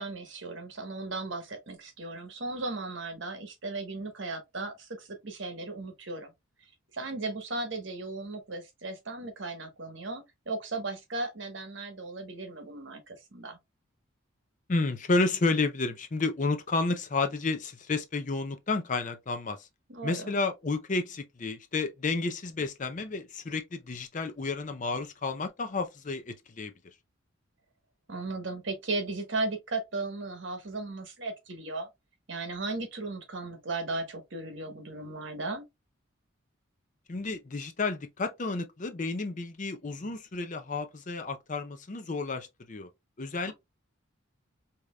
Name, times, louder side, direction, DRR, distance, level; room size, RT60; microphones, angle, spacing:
voice 1, 0.0-6.3 6.9-13.6 19.9-20.4 28.1-31.9 32.3-35.6 43.5-43.6, right 3 dB, 65° right, 1.2 m, -36 dB
voice 2, 14.7-19.7 20.0-26.7 37.1-42.9 43.2-43.5, left 3 dB, 40° left, 0.6 m, -31 dB
4.9 x 2.8 x 2.3 m
head